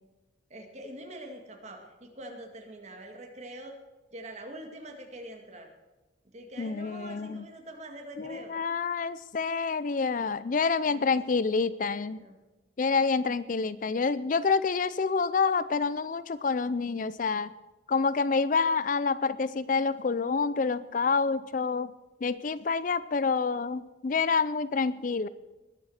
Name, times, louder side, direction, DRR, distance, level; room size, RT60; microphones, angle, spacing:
voice 1, 0.5-3.8 4.1-5.7 6.3-8.6 10.8-11.1 12.1-12.4, right 1 dB, 35° right, 3 dB, 2.2 m, -44 dB
voice 2, 6.6-7.5 8.2-12.2 12.8-17.5 17.9-21.9 22.2-25.3, left 4 dB, 45° left, 16 dB, 0.4 m, -27 dB
20.0 x 7.6 x 6.5 m, 1.1 s
head